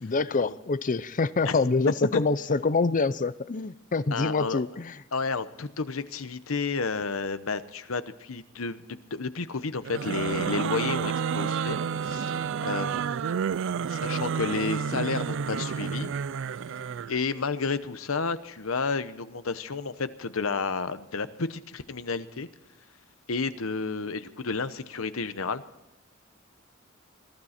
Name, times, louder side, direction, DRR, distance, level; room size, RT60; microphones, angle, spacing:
voice 1, 0.0-5.0, left 3 dB, 40° left, 0.6 m, -26 dB
voice 2, 4.1-4.6 5.1-11.8 12.0-12.3 12.6-13.3 13.9-16.1 17.1-22.5 23.3-25.6, left 4 dB, 80° left, 0.9 m, -31 dB
sound 1, 9.8-17.2, right 6 dB, 65° right, 0.4 m, -30 dB
21.5 x 12.5 x 4.3 m
head